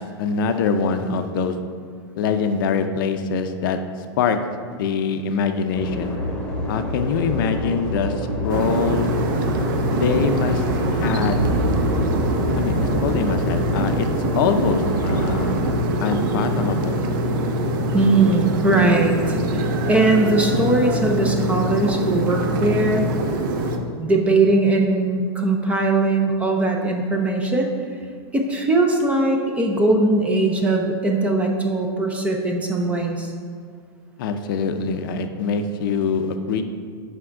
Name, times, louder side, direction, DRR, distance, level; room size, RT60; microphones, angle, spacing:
voice 1, 0.0-1.5 2.2-3.8 4.2-4.4 4.8-6.1 6.7-9.1 9.9-10.6 10.9-11.4 12.6-14.1 14.4-15.5 16.0-17.0 34.2-36.6, left 5 dB, 50° left, 8 dB, 0.5 m, -23 dB
sound 1, 5.7-15.7, equal, 10° left, 1.1 m, -28 dB
sound 2, 8.5-23.8, right 1 dB, 50° right, 0.7 m, -24 dB
sound 3, 11.3-20.4, left 1 dB, 85° right, 1.5 m, -32 dB
voice 2, 17.9-23.1 24.0-27.7 28.3-33.3, right 2 dB, 10° right, 2 dB, 0.5 m, -20 dB
6.2 x 5.2 x 4.5 m, 2.1 s
supercardioid pair, 155°, 14 cm